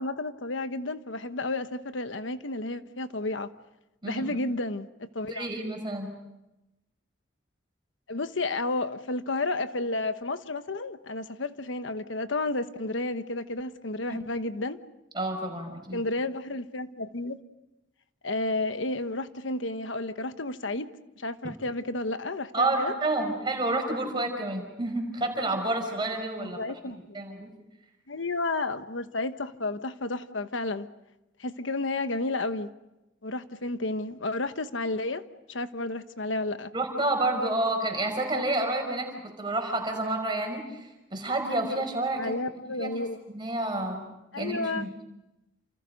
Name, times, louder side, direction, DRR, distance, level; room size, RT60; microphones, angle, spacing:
voice 1, 0.0-3.5 4.0-5.5 8.1-14.8 15.9-17.4 18.2-20.9 21.2-22.9 26.4-27.2 28.1-30.9 31.4-32.7 33.2-35.2 35.5-36.7 42.1-43.2 44.3-44.9, left 2 dB, 80° left, 10 dB, 1.2 m, -31 dB
voice 2, 5.3-6.1 14.1-14.2 15.1-16.0 22.5-26.6 27.1-27.5 36.7-42.3 42.8-42.9 43.3-44.0 44.4-44.9, right 2 dB, 25° right, 3 dB, 5.4 m, -29 dB
29.5 x 28.0 x 5.3 m, 0.94 s
head